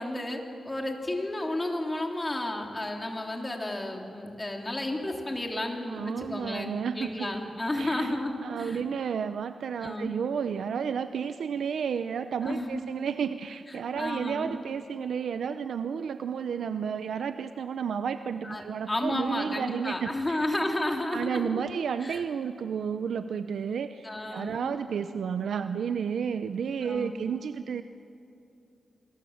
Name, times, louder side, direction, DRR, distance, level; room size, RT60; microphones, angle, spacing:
voice 1, 0.0-8.8 9.8-10.2 12.4-12.8 13.7-14.6 18.4-21.6 22.0-22.2 24.0-24.8 26.8-27.2, left 1 dB, 20° left, 2 dB, 3.2 m, -32 dB
voice 2, 5.9-7.3 7.8-8.1 8.4-20.4 21.1-27.8, right 7 dB, 90° right, 10 dB, 0.6 m, -32 dB
26.5 x 22.0 x 7.3 m, 2.7 s
wide cardioid pair, 100°, 0 cm